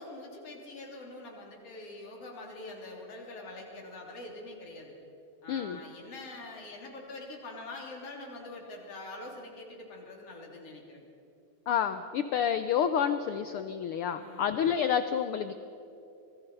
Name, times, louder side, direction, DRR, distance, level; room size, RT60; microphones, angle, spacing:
voice 1, 0.0-4.9 5.4-11.1 14.1-14.5, left 2 dB, 55° left, -1 dB, 4.4 m, -44 dB
voice 2, 5.5-5.8 11.7-15.5, left 8 dB, 90° left, 10 dB, 1.2 m, -29 dB
26.5 x 19.5 x 5.5 m, 2.9 s
omnidirectional pair, 3.3 m